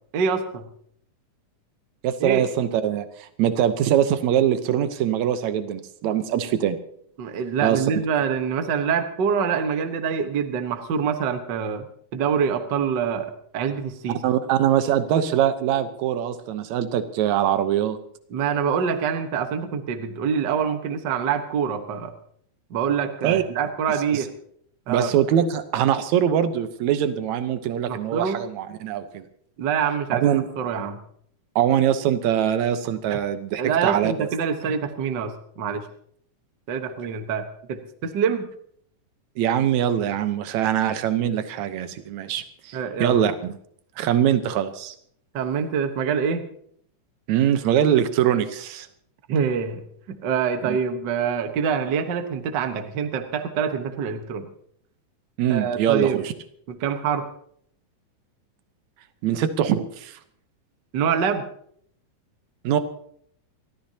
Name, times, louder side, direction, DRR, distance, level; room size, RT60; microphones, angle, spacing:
voice 1, 0.1-0.7 2.2-2.5 7.2-11.8 12.1-14.2 18.3-22.1 22.7-24.3 24.9-25.1 27.9-28.4 29.6-31.0 33.1-33.2 33.6-35.8 36.7-38.5 42.7-43.2 45.3-46.5 49.3-49.8 50.1-54.5 55.5-56.2 56.7-57.3 60.9-61.4, right 7 dB, 50° right, 7 dB, 1.4 m, -25 dB
voice 2, 2.0-6.8 7.6-8.0 14.2-18.0 23.2-23.4 24.1-24.2 24.9-29.2 30.1-30.5 31.6-34.3 39.4-43.5 44.0-44.9 47.3-48.9 50.6-50.8 55.4-56.3 59.2-60.2 62.6-62.8, right 10 dB, 70° right, 10 dB, 2.2 m, -23 dB
29.5 x 13.5 x 2.9 m, 0.65 s
omnidirectional pair, 3.5 m